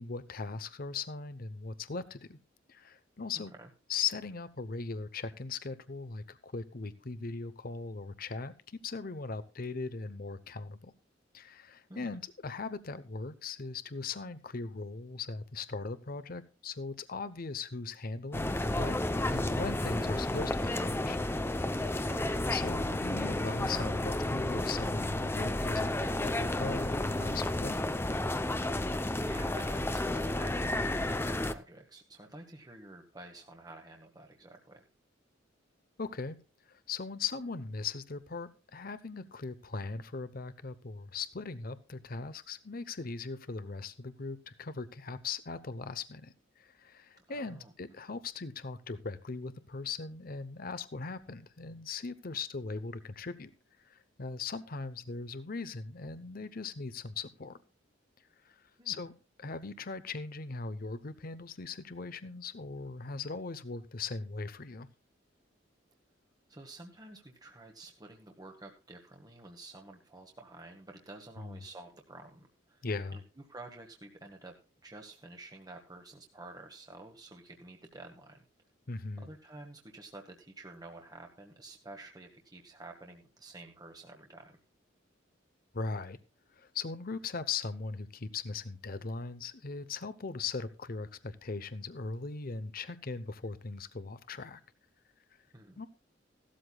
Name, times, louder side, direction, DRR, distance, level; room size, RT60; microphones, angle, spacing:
voice 1, 0.0-2.4 2.7-3.5 3.9-10.9 11.3-19.0 19.3-21.2 22.5-27.8 36.0-36.4 36.7-53.5 53.8-57.6 58.4-59.1 59.4-64.9 71.4-71.6 72.8-73.2 78.9-79.3 85.7-86.2 86.5-94.6 95.8-95.9, left 4 dB, 50° left, 13 dB, 0.8 m, -39 dB
sound 1, 18.3-31.5, left 1 dB, 10° left, 0.6 m, -32 dB
voice 2, 22.0-22.5 29.2-34.8 47.2-47.7 58.8-59.0 66.5-72.8 73.1-74.6 74.8-78.4 79.2-84.6 95.5-95.8, right 2 dB, 20° right, 3 dB, 1.2 m, -50 dB
16.0 x 13.0 x 2.3 m, 0.31 s
head